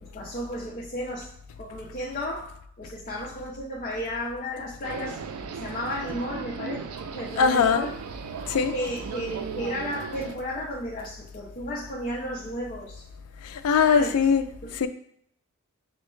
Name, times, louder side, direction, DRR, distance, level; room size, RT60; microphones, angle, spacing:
voice 1, 0.0-1.3 1.6-2.5 2.8-5.2 5.5-6.8 7.1-8.0 8.7-13.0 13.8-14.2 14.6-14.8, equal, 35° left, -3 dB, 0.5 m, -33 dB
sound 1, 4.8-10.4, right 6 dB, 85° right, 0.3 m, -37 dB
voice 2, 7.4-7.9 8.5-8.7 13.4-14.4 14.7-14.9, left 6 dB, 85° left, 10 dB, 0.4 m, -21 dB
6.0 x 2.1 x 3.1 m, 0.68 s
head